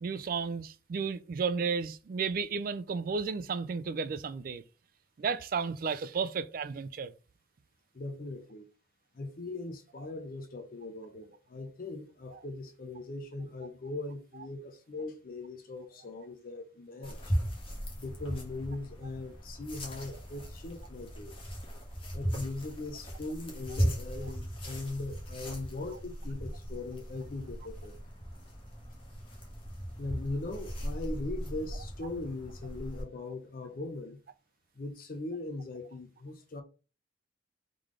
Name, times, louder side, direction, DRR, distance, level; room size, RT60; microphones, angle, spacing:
voice 1, 0.0-4.6 5.2-7.1, right 5 dB, 50° right, 0.3 m, -33 dB
voice 2, 7.9-8.7 9.1-17.4 18.0-21.3 22.1-27.9 30.0-34.2 34.8-36.6, left 2 dB, 45° left, 0.5 m, -40 dB
sound 1, 17.0-33.0, equal, 30° left, 1.3 m, -38 dB
3.7 x 3.2 x 3.6 m
head